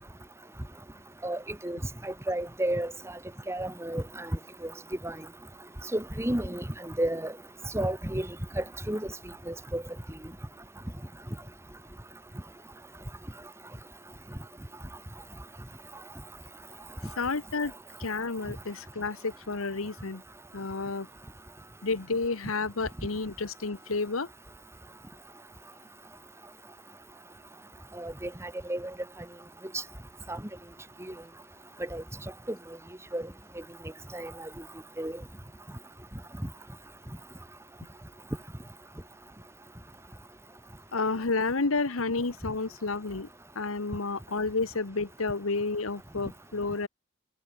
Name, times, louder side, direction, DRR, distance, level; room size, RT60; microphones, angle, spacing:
voice 1, 1.2-2.9 3.5-4.3 4.6-4.7 5.0-5.1 5.9-7.3 7.7-8.3 8.6-9.1 9.5-9.8 28.0-28.9 30.3-30.4 31.9-32.0 33.1-33.2 34.1-34.5 35.0-35.1, right 1 dB, 15° right, 1.5 m, -32 dB
voice 2, 17.2-17.7 18.0-20.2 20.5-21.1 21.8-24.3 40.9-43.3 43.5-46.9, left 3 dB, 90° left, 1.3 m, -30 dB
head